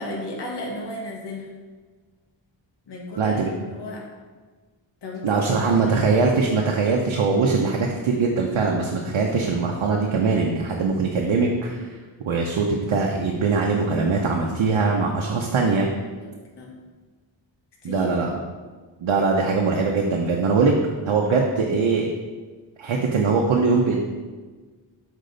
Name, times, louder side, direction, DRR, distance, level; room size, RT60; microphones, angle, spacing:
voice 1, 0.0-1.5 2.9-4.0 5.0-5.4 5.7-6.2 16.1-16.7 17.8-18.1 21.6-21.7, left 1 dB, 60° left, -2 dB, 1.2 m, -35 dB
voice 2, 3.2-3.5 5.2-11.9 12.2-15.9 17.8-18.3 19.0-20.7 21.1-22.1 22.8-24.0, right 4 dB, 90° right, 0 dB, 0.8 m, -21 dB
6.6 x 4.4 x 3.9 m, 1.4 s
wide cardioid pair, 110°, 46 cm